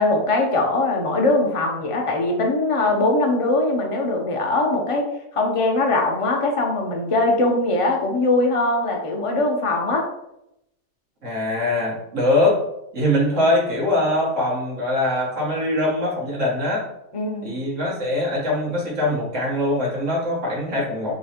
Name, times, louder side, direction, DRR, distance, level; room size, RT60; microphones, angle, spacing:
voice 1, 0.0-5.1 5.3-10.1 17.1-17.6, left 2 dB, 30° left, 1 dB, 0.7 m, -21 dB
voice 2, 11.2-12.6 12.9-16.8 17.4-21.1, left 1 dB, 80° right, -4 dB, 2.0 m, -22 dB
4.0 x 3.0 x 4.3 m, 0.82 s
omnidirectional pair, 1.3 m